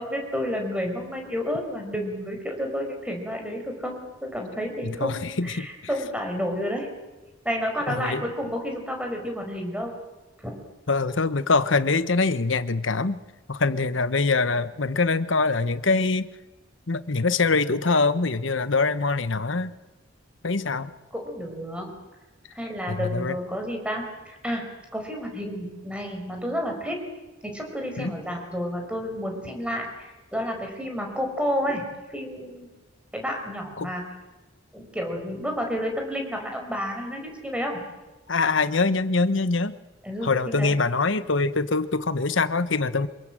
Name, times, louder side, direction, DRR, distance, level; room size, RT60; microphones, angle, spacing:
voice 1, 0.0-6.9 7.4-9.9 10.4-10.5 21.1-21.9 22.5-24.6 24.9-27.0 27.4-31.8 32.1-32.7 33.1-34.0 34.7-37.8 40.0-40.7, equal, 5° right, 2 dB, 5.1 m, -30 dB
voice 2, 4.8-5.7 7.9-8.2 10.9-13.2 13.5-16.3 16.9-19.7 20.4-20.9 22.9-23.4 28.0-28.2 33.8-33.9 38.3-39.8 40.2-43.1, left 3 dB, 70° left, 13 dB, 1.1 m, -24 dB
26.0 x 22.5 x 7.7 m, 1.1 s
head